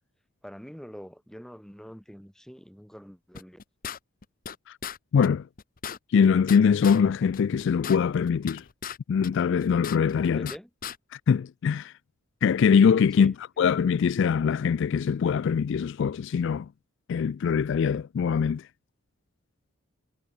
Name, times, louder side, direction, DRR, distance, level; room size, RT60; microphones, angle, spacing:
voice 1, 0.4-3.6 10.3-10.7 13.1-13.3, equal, ahead, 2.9 m, -44 dB
sound 1, 3.3-4.6 4.8-5.0 5.2-5.3 5.6-7.0 7.3-9.0 9.2-10.6 10.8-11.0, left 8 dB, 40° left, 0.8 m, -37 dB
voice 2, 5.1-5.5 6.1-8.6 9.1-10.5 11.3-11.9 12.4-16.7 17.1-18.6, left 6 dB, 60° left, 0.3 m, -23 dB
head